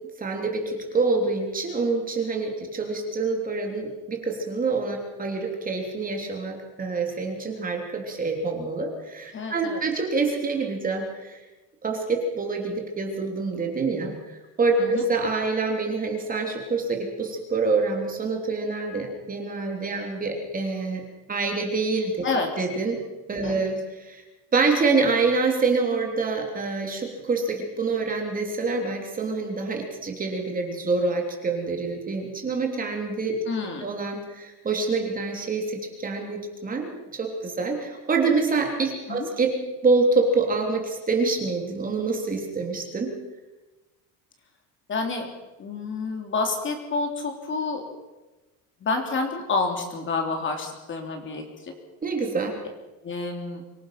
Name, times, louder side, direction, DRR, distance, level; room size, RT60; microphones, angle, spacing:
voice 1, 0.2-11.4 11.8-21.0 21.3-22.2 22.6-23.0 23.3-24.2 24.5-33.4 33.8-43.1 52.0-52.6, right 3 dB, 20° right, 2 dB, 3.4 m, -26 dB
voice 2, 9.3-9.8 14.8-15.0 22.2-22.5 23.4-23.6 33.5-33.9 39.1-39.3 44.9-45.3 45.6-47.9 48.8-51.7 53.0-53.6, left 3 dB, 30° left, 3 dB, 3.4 m, -29 dB
25.0 x 18.0 x 5.9 m, 1.1 s
cardioid pair, 150°, 39 cm